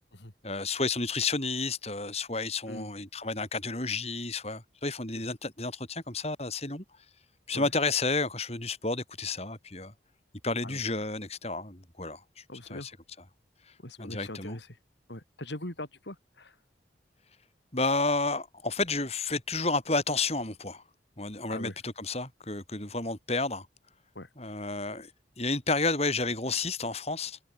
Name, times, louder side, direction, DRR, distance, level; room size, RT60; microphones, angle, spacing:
voice 1, 0.4-6.8 7.5-9.9 10.4-12.4 12.7-12.9 14.0-14.6 17.7-20.8 21.2-23.7 24.4-25.1 25.4-27.4, left 3 dB, 35° left, 5.2 m, -31 dB
voice 2, 12.5-12.9 13.8-14.7 15.1-16.6 21.5-21.8 24.1-24.3, left 1 dB, 75° left, 4.1 m, -41 dB
head